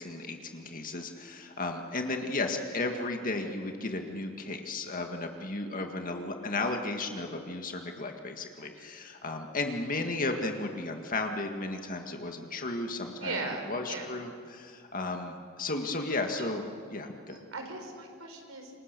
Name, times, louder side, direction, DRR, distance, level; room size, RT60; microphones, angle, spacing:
voice 1, 0.0-13.4 13.7-16.6 16.9-17.4, left 2 dB, 40° left, 4 dB, 1.9 m, -34 dB
voice 2, 13.2-14.1 16.4-16.6 17.3-18.7, right 3 dB, 75° right, 4 dB, 4.6 m, -38 dB
28.0 x 26.0 x 6.8 m, 2.2 s
head